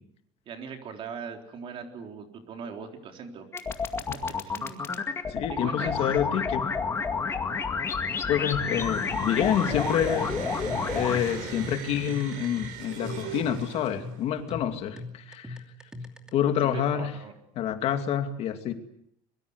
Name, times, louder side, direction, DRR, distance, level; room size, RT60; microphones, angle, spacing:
voice 1, 0.5-3.5 4.3-4.9 5.5-6.1 16.6-17.3, right 6 dB, 40° right, 4 dB, 3.9 m, -40 dB
sound 1, 3.5-11.2, left 5 dB, 20° left, 2.1 m, -30 dB
voice 2, 5.3-6.7 8.3-10.3 10.9-15.6 16.3-17.1 17.6-18.7, left 9 dB, 45° left, 6 dB, 2.4 m, -27 dB
sound 2, 8.6-14.3, right 5 dB, 65° right, 7.0 m, -38 dB
sound 3, 8.7-16.3, left 2 dB, 5° right, 2.7 m, -41 dB
24.0 x 23.0 x 8.1 m, 0.74 s
cardioid pair, 170°, 14 cm